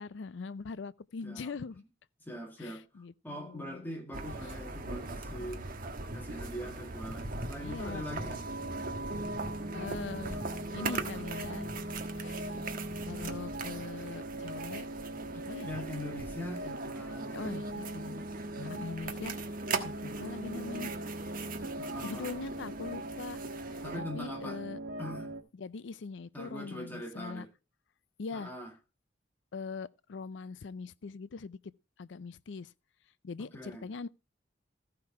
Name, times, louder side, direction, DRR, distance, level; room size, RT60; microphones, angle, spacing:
voice 1, 0.0-1.8 2.6-3.9 7.6-8.0 9.7-10.4 10.7-11.7 12.2-12.6 13.0-14.9 15.3-15.7 17.3-18.2 18.6-19.4 19.8-20.9 22.0-24.8 25.6-27.5 28.2-28.5 29.5-31.6 32.0-32.7 33.2-34.1, left 4 dB, 70° left, 0.5 m, -42 dB
voice 2, 1.2-1.5 2.2-2.8 3.2-5.6 6.1-8.4 10.3-11.3 15.7-17.9 20.1-20.2 21.8-22.3 23.8-24.6 25.0-25.3 26.3-27.5 28.3-28.7 33.4-33.8, left 1 dB, 10° left, 2.0 m, -42 dB
sound 1, 4.1-24.0, right 3 dB, 50° right, 1.3 m, -40 dB
sound 2, 8.4-25.4, right 1 dB, 85° right, 2.3 m, -40 dB
14.5 x 5.8 x 4.8 m
head